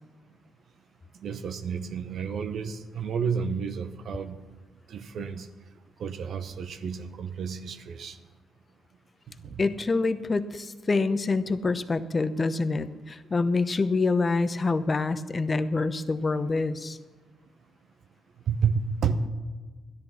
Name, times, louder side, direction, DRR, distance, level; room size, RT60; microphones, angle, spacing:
voice 1, 1.2-4.4 4.9-5.5 6.0-8.2 9.4-9.6 18.5-19.3, right 6 dB, 65° right, 9 dB, 0.9 m, -30 dB
voice 2, 9.6-17.0, left 3 dB, 35° left, 12 dB, 0.8 m, -26 dB
13.0 x 10.5 x 5.7 m, 1.4 s
supercardioid pair, 65°, 0 cm